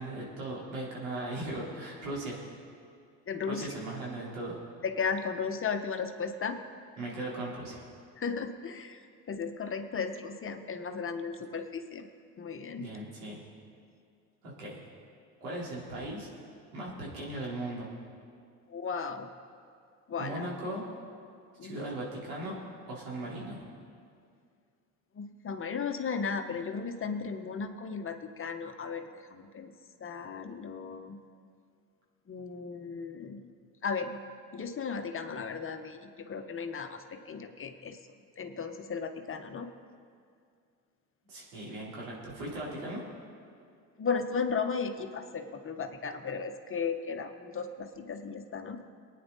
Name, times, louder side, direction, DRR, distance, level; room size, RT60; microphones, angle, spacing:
voice 1, 0.0-2.4 3.5-4.6 7.0-7.8 12.8-13.4 14.4-14.8 15.4-16.3 16.7-17.9 20.2-20.8 21.6-22.5 22.9-23.6 41.3-43.0, right 1 dB, 85° right, -5 dB, 4.0 m, -38 dB
voice 2, 3.3-3.7 4.8-6.6 8.2-9.0 9.3-12.1 12.4-12.8 18.7-19.3 20.1-20.5 21.6-21.7 25.1-29.7 30.0-31.2 32.3-33.5 33.8-34.2 34.5-38.0 38.4-39.7 44.0-48.8, left 5 dB, 30° left, 6 dB, 1.2 m, -35 dB
22.5 x 9.5 x 4.1 m, 2.3 s
hypercardioid pair, 75°, 41 cm